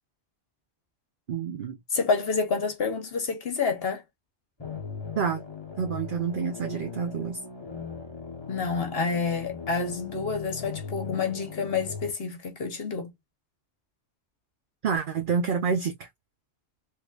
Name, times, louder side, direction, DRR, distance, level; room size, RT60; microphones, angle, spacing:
voice 1, 1.3-1.8 5.2-5.4 5.8-7.4 14.8-16.1, right 6 dB, 55° right, 0.8 m, -28 dB
voice 2, 1.9-4.0 8.5-13.1, left 4 dB, 60° left, 1.1 m, -28 dB
sound 1, 4.6-12.1, left 5 dB, 25° left, 0.9 m, -39 dB
3.4 x 3.2 x 2.3 m
omnidirectional pair, 1.2 m